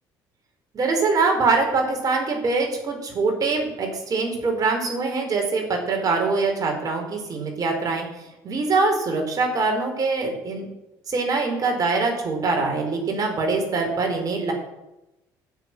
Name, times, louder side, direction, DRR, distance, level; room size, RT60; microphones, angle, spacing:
voice 1, 0.7-8.1 8.4-10.7 11.1-14.5, right 3 dB, 45° right, 3 dB, 4.4 m, -23 dB
12.0 x 7.0 x 9.5 m, 0.94 s
supercardioid pair, 85°, 8 cm